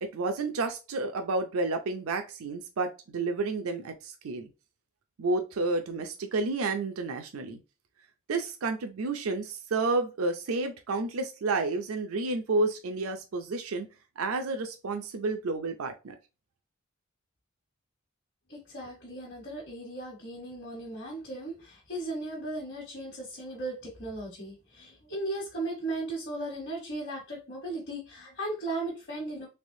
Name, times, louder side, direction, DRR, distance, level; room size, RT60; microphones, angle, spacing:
voice 1, 0.0-4.5 5.2-7.6 8.3-13.9 14.2-16.2, right 3 dB, 75° right, 6 dB, 0.5 m, -30 dB
voice 2, 18.5-29.5, right 2 dB, 50° left, -3 dB, 1.2 m, -37 dB
3.3 x 3.2 x 2.6 m, 0.29 s
head